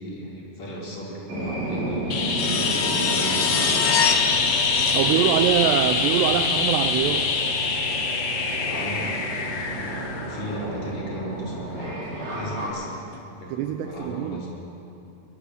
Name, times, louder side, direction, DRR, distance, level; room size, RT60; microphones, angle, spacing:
voice 1, 0.0-5.6 8.6-9.2 9.7-9.8 10.1-13.0 13.3-14.5, right 1 dB, 40° left, -4 dB, 5.6 m, -36 dB
sound 1, 1.3-12.7, right 1 dB, 35° right, 7.3 m, -32 dB
sound 2, 2.1-10.8 13.1-13.2, left 5 dB, 55° left, 1.9 m, -24 dB
voice 2, 4.8-7.4 13.5-14.4, right 11 dB, 80° right, 8 dB, 2.7 m, -24 dB
22.0 x 22.0 x 6.7 m, 2.7 s
omnidirectional pair, 5.1 m